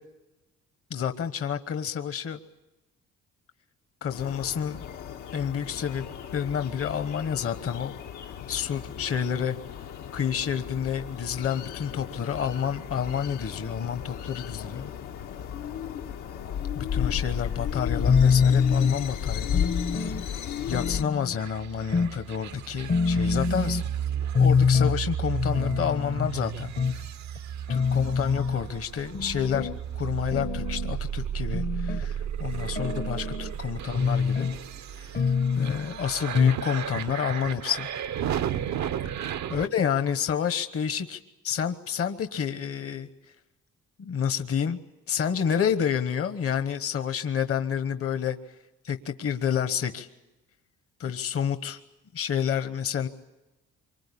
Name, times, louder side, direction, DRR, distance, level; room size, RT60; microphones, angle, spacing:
voice 1, 0.9-2.4 4.0-4.8 5.3-7.9 8.5-9.6 10.1-14.8 16.8-19.7 20.0-20.4 20.7-23.8 24.3-27.0 27.7-29.7 29.9-34.5 35.0-35.1 35.6-37.9 39.5-43.1 44.0-44.8 45.1-48.4 48.8-50.1 51.0-51.8 52.1-53.1, left 8 dB, 50° left, 9 dB, 1.2 m, -29 dB
sound 1, 4.1-21.0, left 8 dB, 80° left, 1.5 m, -34 dB
sound 2, 18.0-19.0 19.5-20.3 20.7-21.4 21.9-22.2 22.5-22.6 22.9-23.9 24.3-25.0 25.3-26.3 26.8-27.0 27.4-27.5 27.7-28.6 29.1-29.8 30.3-31.0 31.5-32.1 32.5-33.6 34.0-34.6 35.1-35.8 36.3-36.7 37.0-37.1 37.3-37.4, left 5 dB, 35° left, 0.8 m, -25 dB
sound 3, 21.3-39.7, right 9 dB, 65° right, 0.9 m, -34 dB
25.5 x 24.5 x 8.5 m, 1.0 s
cardioid pair, 90°, 30 cm